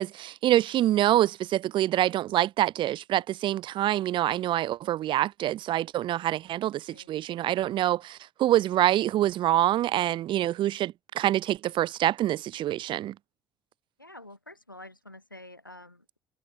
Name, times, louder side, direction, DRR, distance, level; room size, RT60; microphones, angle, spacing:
voice 1, 0.0-13.1, right 13 dB, 50° right, 1.3 m, -26 dB
voice 2, 14.0-16.2, left 1 dB, 90° left, 6.0 m, -48 dB
figure-of-eight pair, 55°, 11 cm